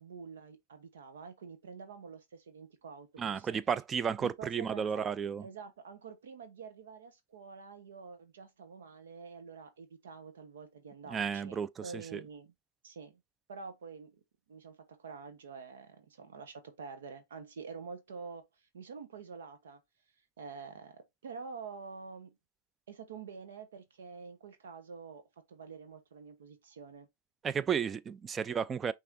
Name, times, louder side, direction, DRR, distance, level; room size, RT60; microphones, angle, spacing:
voice 1, 0.0-3.6 4.2-5.1 5.4-12.5 12.8-13.2 13.5-14.2 14.5-19.8 20.4-22.4 22.9-25.2 25.5-27.1, right 5 dB, 80° right, 1.0 m, -47 dB
voice 2, 3.2-5.4 11.1-12.2 27.4-28.9, right 7 dB, 20° right, 0.4 m, -33 dB
5.7 x 3.4 x 2.6 m
hypercardioid pair, 115°, 0 cm